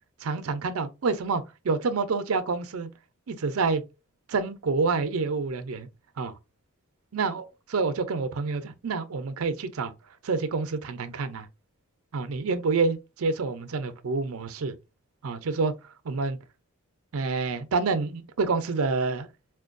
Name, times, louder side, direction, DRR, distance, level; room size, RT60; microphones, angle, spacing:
voice 1, 0.2-2.9 3.3-3.8 4.3-5.9 6.2-6.3 7.1-9.9 10.2-11.5 12.1-14.7 15.2-15.8 16.0-16.4 17.1-19.3, right 4 dB, 85° right, 0.5 m, -28 dB
4.3 x 2.2 x 2.5 m
head